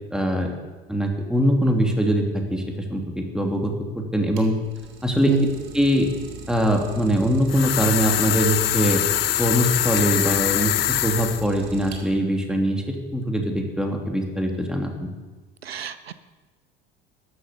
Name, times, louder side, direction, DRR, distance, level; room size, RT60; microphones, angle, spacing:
voice 1, 0.1-0.5 0.9-2.6 2.9-4.5 5.0-5.3 5.7-6.1 6.5-9.0 9.4-15.1, equal, ahead, 2 dB, 2.8 m, -22 dB
Idling, 4.1-12.4, right 4 dB, 60° right, 3.0 m, -40 dB
sound 1, 7.5-11.4, left 13 dB, 75° left, 0.7 m, -23 dB
voice 2, 15.6-16.1, right 9 dB, 85° right, 13 dB, 0.7 m, -25 dB
13.0 x 11.5 x 6.8 m, 1.3 s
figure-of-eight pair, 70°, 30 cm